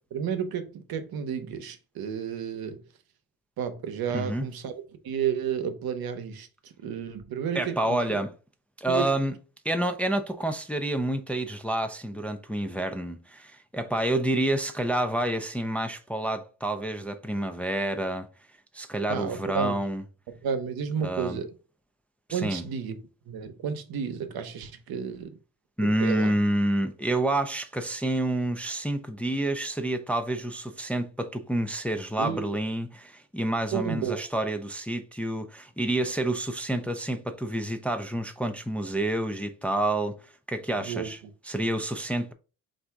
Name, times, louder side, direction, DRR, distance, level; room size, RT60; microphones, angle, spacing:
voice 1, 0.1-2.8 3.6-4.7 5.0-8.1 8.9-9.0 19.1-19.8 20.4-21.5 22.3-23.0 23.3-25.4 25.8-26.3 32.2-32.5 33.7-34.2 40.8-41.1, right 7 dB, 75° right, 0.8 m, -32 dB
voice 2, 4.1-4.5 7.5-8.3 8.8-9.3 9.6-18.3 18.7-20.0 21.0-21.4 22.3-22.6 25.8-41.2 41.4-42.3, right 1 dB, 5° left, 0.4 m, -28 dB
3.5 x 2.6 x 4.4 m
cardioid pair, 90°, 37 cm